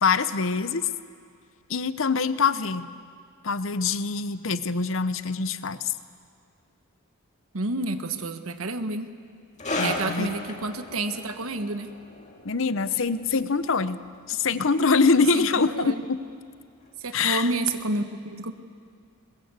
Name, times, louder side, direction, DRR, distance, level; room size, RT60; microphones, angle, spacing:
voice 1, 0.0-0.9 1.7-2.9 3.4-5.9 9.8-10.3 12.4-14.0 14.3-16.2 17.1-17.5, left 4 dB, 60° left, 13 dB, 0.8 m, -24 dB
voice 2, 7.5-9.1 9.8-11.9 15.3-15.5 15.7-16.0 17.0-18.5, right 2 dB, 75° right, 9 dB, 1.2 m, -29 dB
sound 1, 9.6-16.6 16.8-17.1 17.8-17.9, left 2 dB, 35° left, 2.3 m, -36 dB
21.5 x 21.0 x 8.2 m, 2.2 s
head